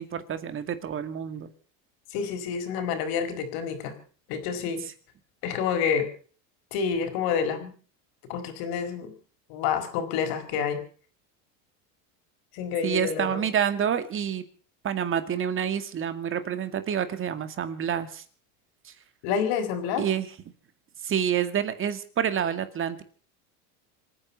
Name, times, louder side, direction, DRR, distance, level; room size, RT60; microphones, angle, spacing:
voice 1, 0.0-1.5 12.8-14.4 14.8-18.2 18.8-18.9 20.0-20.3 21.0-23.0, right 8 dB, 30° right, 10 dB, 2.2 m, -28 dB
voice 2, 2.1-3.9 4.3-4.8 5.4-6.1 6.7-7.7 8.3-9.1 9.5-10.8 12.5-13.5 19.2-20.0, left 7 dB, 60° left, 7 dB, 4.7 m, -28 dB
26.5 x 9.8 x 5.6 m, 0.42 s
supercardioid pair, 140°, 41 cm